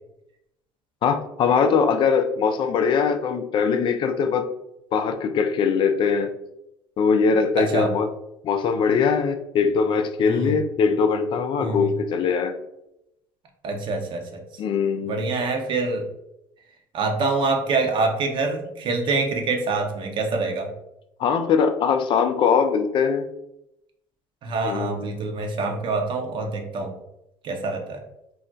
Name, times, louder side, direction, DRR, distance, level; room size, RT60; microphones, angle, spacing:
voice 1, 1.0-4.5 4.9-6.3 7.0-8.1 8.4-12.5 14.6-15.2 21.2-23.2 24.6-25.1, left 6 dB, 50° left, 7 dB, 0.4 m, -21 dB
voice 2, 7.6-7.9 10.2-10.6 11.6-12.0 13.6-14.4 15.0-16.1 16.9-20.7 24.4-26.9 27.4-28.0, right 3 dB, 50° right, 3 dB, 0.7 m, -25 dB
2.3 x 2.1 x 3.8 m, 0.84 s
hypercardioid pair, 75°, 11 cm